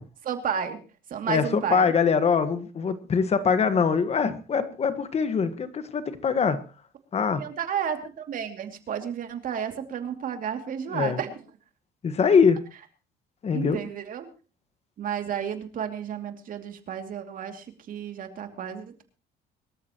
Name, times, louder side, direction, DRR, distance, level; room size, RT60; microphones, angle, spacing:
voice 1, 0.2-0.8 1.1-1.9 7.3-11.4 13.5-14.3 15.0-19.0, right 8 dB, 55° right, 6 dB, 2.6 m, -32 dB
voice 2, 1.3-6.6 7.1-7.4 10.9-11.2 12.0-12.6 13.4-13.8, left 6 dB, 40° left, 11 dB, 1.5 m, -23 dB
24.0 x 13.5 x 3.0 m, 0.34 s
cardioid pair, 110°, 17 cm